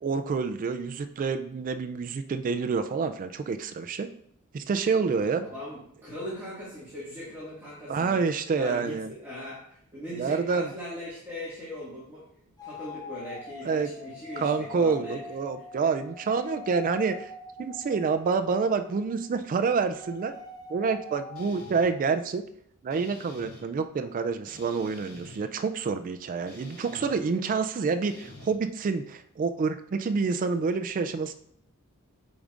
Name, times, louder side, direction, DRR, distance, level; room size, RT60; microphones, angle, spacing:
voice 1, 0.0-4.1 4.5-5.4 7.9-9.1 10.2-10.7 13.6-13.9 14.4-17.3 17.6-20.3 20.7-22.5 22.8-31.3, right 5 dB, 40° right, 9 dB, 0.3 m, -28 dB
voice 2, 5.4-8.2 8.6-12.2 12.6-15.2, left 1 dB, 10° right, -10 dB, 1.8 m, -39 dB
sound 1, 12.6-19.5 19.8-22.2, left 4 dB, 20° left, 0.5 m, -44 dB
sound 2, 21.4-21.8 22.9-23.6 24.5-25.4 26.5-27.2 28.0-28.5, left 1 dB, 75° left, 2.3 m, -47 dB
8.6 x 5.0 x 2.5 m, 0.71 s
head